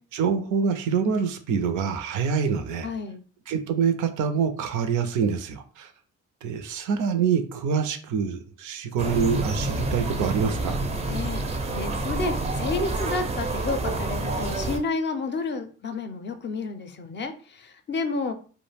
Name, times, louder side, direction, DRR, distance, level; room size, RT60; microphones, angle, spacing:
voice 1, 0.0-2.9 3.5-5.9 6.4-10.8, right 6 dB, 85° right, 9 dB, 0.5 m, -26 dB
voice 2, 2.8-3.2 11.1-11.4 11.7-18.3, left 3 dB, 40° left, 7 dB, 0.4 m, -30 dB
sound 1, 9.0-14.8, right 2 dB, 20° right, 0.4 m, -28 dB
2.3 x 2.1 x 3.2 m, 0.40 s
cardioid pair, 90°, 30 cm